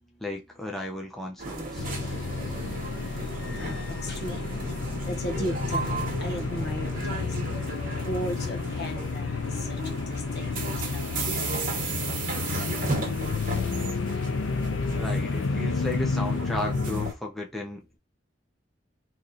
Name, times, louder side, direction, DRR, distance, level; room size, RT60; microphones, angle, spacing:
voice 1, 0.2-1.9 15.0-18.0, left 1 dB, ahead, 0.5 m, -34 dB
sound 1, 1.4-17.1, right 3 dB, 45° right, 1.0 m, -35 dB
sound 2, 1.8-17.1, left 4 dB, 80° left, 0.5 m, -31 dB
voice 2, 4.0-4.4 5.1-7.3 8.0-11.1 11.5-11.6, equal, 60° left, 1.1 m, -36 dB
3.1 x 2.6 x 3.7 m
head